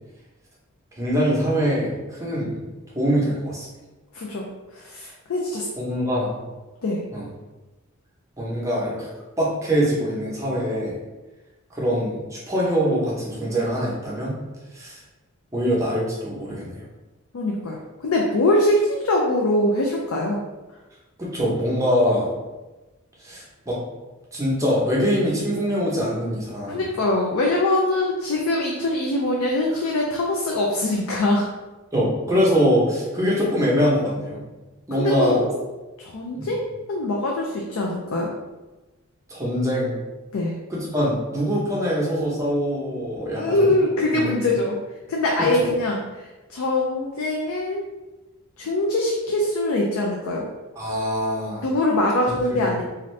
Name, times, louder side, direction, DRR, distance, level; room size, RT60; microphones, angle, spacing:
voice 1, 1.0-2.6 2.9-3.7 5.8-6.4 7.1-7.2 8.4-9.1 9.4-10.9 11.7-14.4 14.7-15.0 15.5-16.8 21.2-22.3 23.2-23.8 24.3-26.8 31.9-34.4 34.9-35.4 36.3-36.5 39.3-40.0 40.7-43.7 44.1-44.3 45.4-45.5 50.8-51.6 52.5-52.6, equal, 15° right, -5 dB, 0.7 m, -23 dB
voice 2, 4.1-4.5 4.7-5.7 6.8-7.0 17.3-20.4 26.7-31.5 34.9-35.5 36.0-38.3 40.3-40.6 43.3-44.8 45.1-47.9 48.6-50.5 51.6-52.8, left 1 dB, 75° left, -1 dB, 0.4 m, -23 dB
2.6 x 2.6 x 3.1 m, 1.1 s
head